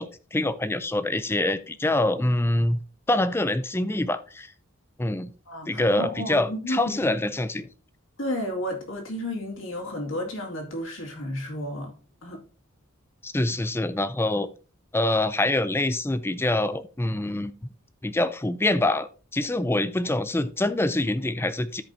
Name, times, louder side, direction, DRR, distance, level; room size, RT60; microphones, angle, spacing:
voice 1, 0.0-2.8 3.1-4.5 5.0-5.3 5.7-7.7 13.2-14.5 14.9-17.5 18.0-21.8, left 1 dB, 10° left, 13 dB, 0.4 m, -25 dB
voice 2, 5.5-7.1 8.2-11.9 12.2-12.4, equal, 65° left, 1 dB, 2.2 m, -32 dB
13.5 x 5.2 x 2.7 m, 0.35 s
head